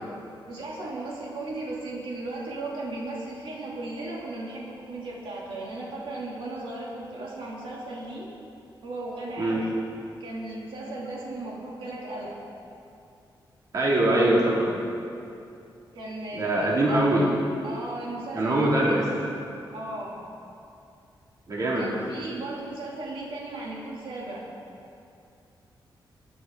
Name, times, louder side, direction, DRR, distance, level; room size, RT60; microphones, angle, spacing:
voice 1, 0.5-8.3 8.8-9.7 10.2-12.4 15.9-17.0 17.6-18.7 19.7-20.2 21.7-24.5, right 2 dB, 90° right, -5 dB, 3.1 m, -36 dB
voice 2, 13.7-14.8 16.3-17.3 18.3-19.1 21.5-22.0, right 1 dB, 45° right, -5 dB, 2.7 m, -23 dB
22.5 x 11.0 x 4.0 m, 2.6 s
wide cardioid pair, 175°, 8 cm